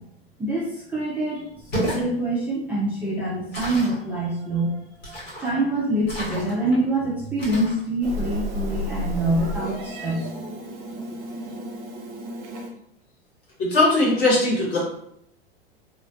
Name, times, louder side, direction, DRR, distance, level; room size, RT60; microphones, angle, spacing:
voice 1, 0.4-1.4 1.7-4.8 5.1-10.7, right 1 dB, 5° right, -8 dB, 0.4 m, -25 dB
sound 1, 1.5-2.1 3.5-4.0 5.0-5.5 6.0-6.7 7.4-7.8, equal, 75° left, 1.3 m, -32 dB
Meow, 8.0-12.7, left 1 dB, 45° right, 0.7 m, -32 dB
voice 2, 13.6-14.8, left 2 dB, 45° left, -4 dB, 1.2 m, -19 dB
2.4 x 2.1 x 2.5 m, 0.74 s
figure-of-eight pair, 90°, 31 cm